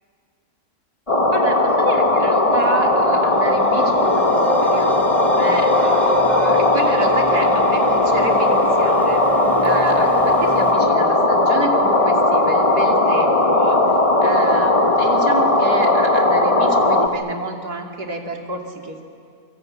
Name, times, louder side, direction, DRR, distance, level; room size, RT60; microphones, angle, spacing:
sound 1, 1.1-17.1, left 2 dB, 20° left, 1.5 m, -17 dB
voice 1, 1.3-9.2 9.6-13.9 14.2-19.0, right 2 dB, 80° right, 2 dB, 3.2 m, -29 dB
sound 2, 2.3-10.7, left 1 dB, ahead, 3.1 m, -29 dB
26.5 x 25.0 x 8.6 m, 2.3 s
omnidirectional pair, 1.6 m